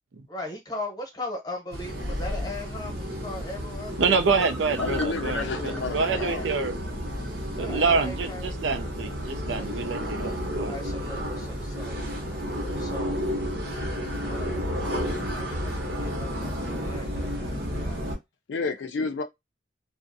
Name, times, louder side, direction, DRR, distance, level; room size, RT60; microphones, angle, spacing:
voice 1, 0.3-4.2 6.0-6.3 7.6-9.1 9.5-9.7 10.6-12.0 12.8-13.3 14.2-14.6 15.3-18.0, left 2 dB, 20° left, 0.9 m, -39 dB
sound 1, 1.7-18.2, equal, 55° right, 0.8 m, -32 dB
voice 2, 4.0-6.8 7.6-10.8, right 4 dB, 75° right, 0.4 m, -26 dB
sound 2, 4.4-8.4 8.7-8.8 9.1-9.2 9.5-9.6, right 1 dB, 5° left, 0.4 m, -41 dB
voice 3, 4.8-6.4 18.5-19.2, left 4 dB, 70° left, 0.4 m, -30 dB
2.5 x 2.1 x 2.5 m
head